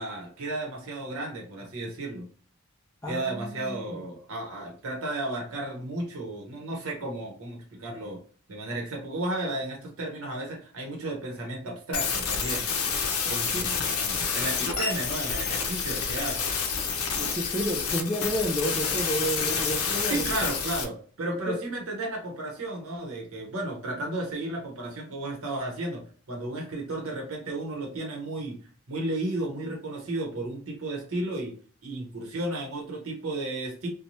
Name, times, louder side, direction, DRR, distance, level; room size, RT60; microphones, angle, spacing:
voice 1, 0.0-2.3 3.1-8.2 8.5-12.7 13.2-16.4 20.1-28.6 28.9-31.5 31.8-33.9, right 2 dB, 70° right, 0 dB, 0.9 m, -33 dB
voice 2, 3.0-4.1 13.5-13.7 17.1-20.3 21.5-21.6 29.6-29.7, equal, 15° left, -2 dB, 0.3 m, -31 dB
sound 1, 11.9-20.8, left 6 dB, 80° left, 0.5 m, -29 dB
2.7 x 2.2 x 3.0 m, 0.43 s
head